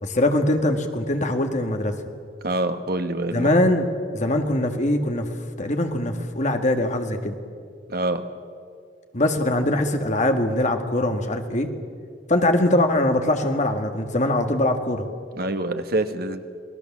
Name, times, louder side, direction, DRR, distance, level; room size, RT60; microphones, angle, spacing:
voice 1, 0.0-1.9 3.3-5.3 5.6-7.4 9.1-11.7 12.3-15.0, left 1 dB, 40° left, 5 dB, 1.8 m, -22 dB
voice 2, 2.4-3.5 7.9-8.2 15.3-16.4, right 2 dB, 55° right, 8 dB, 1.3 m, -25 dB
28.5 x 19.0 x 7.3 m, 2.2 s
head